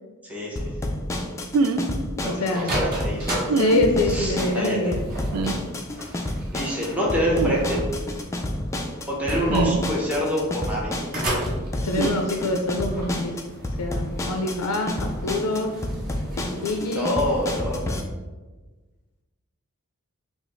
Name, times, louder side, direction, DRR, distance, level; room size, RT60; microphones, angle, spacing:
voice 1, 0.2-0.7 2.2-3.4 4.0-5.0 5.9-7.8 9.1-11.1 16.9-18.1, equal, 5° right, -5 dB, 0.7 m, -27 dB
sound 1, 0.6-18.0, left 1 dB, 15° left, 0.3 m, -30 dB
sound 2, 1.5-1.8 3.5-3.9 5.3-5.6 7.4-7.6 9.5-9.9 12.0-12.2, right 4 dB, 75° right, 0.3 m, -23 dB
voice 2, 2.2-2.7 3.5-5.0 11.8-13.3 13.8-15.7 16.6-17.1, left 2 dB, 90° left, 3 dB, 0.4 m, -25 dB
sound 3, 2.5-18.0, right 1 dB, 45° right, 1.1 m, -36 dB
4.9 x 2.0 x 3.8 m, 1.2 s
head